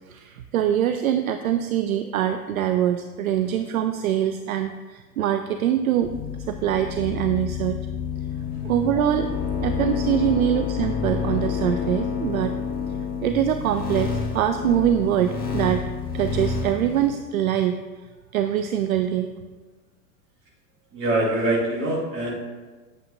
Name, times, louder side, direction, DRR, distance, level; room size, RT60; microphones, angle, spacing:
voice 1, 0.1-6.1 6.5-7.9 8.6-9.3 9.6-12.6 13.2-17.8 18.3-19.3, right 10 dB, 65° right, 8 dB, 0.5 m, -24 dB
sound 1, 6.0-17.1, left 6 dB, 20° left, 1.2 m, -29 dB
voice 2, 8.3-8.7 20.9-22.3, right 1 dB, 25° right, -3 dB, 1.7 m, -25 dB
8.1 x 7.7 x 2.5 m, 1.3 s
figure-of-eight pair, 90°, 47 cm